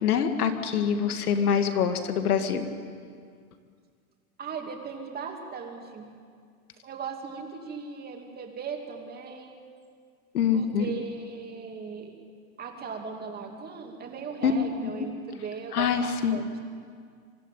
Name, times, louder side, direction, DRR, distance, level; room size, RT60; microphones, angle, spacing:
voice 1, 0.0-2.7 10.3-10.9 14.4-14.5 14.8-15.1 15.7-16.6, left 7 dB, 80° left, 7 dB, 2.1 m, -25 dB
voice 2, 4.4-6.1 6.8-9.6 10.5-12.1 12.6-16.6, right 5 dB, 20° right, 2 dB, 2.8 m, -38 dB
24.5 x 13.0 x 9.3 m, 2.1 s
hypercardioid pair, 135°, 44 cm